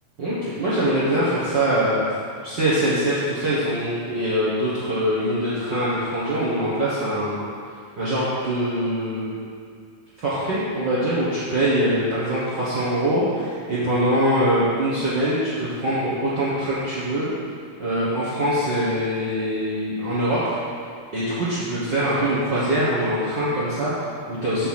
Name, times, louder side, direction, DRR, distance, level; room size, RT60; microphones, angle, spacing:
voice 1, 0.2-2.0 2.4-7.4 8.0-9.3 10.2-17.3 17.8-20.6 21.1-24.7, right 1 dB, 70° right, -10 dB, 1.0 m, -23 dB
6.7 x 5.5 x 5.9 m, 2.2 s
omnidirectional pair, 4.0 m